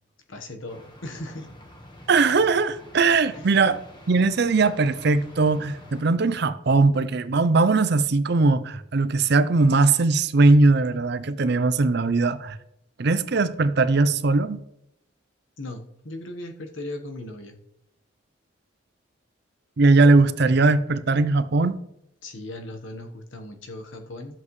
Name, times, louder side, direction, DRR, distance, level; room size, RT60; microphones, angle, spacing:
voice 1, 0.3-1.5 3.3-3.5 15.6-17.6 22.2-24.4, left 1 dB, 70° left, 1.2 m, -38 dB
sound 1, 0.7-6.0, left 1 dB, 25° left, 1.3 m, -47 dB
voice 2, 2.1-3.8 4.1-12.6 13.0-14.6 19.8-21.8, right 3 dB, 55° right, 0.5 m, -20 dB
13.0 x 7.6 x 3.2 m
head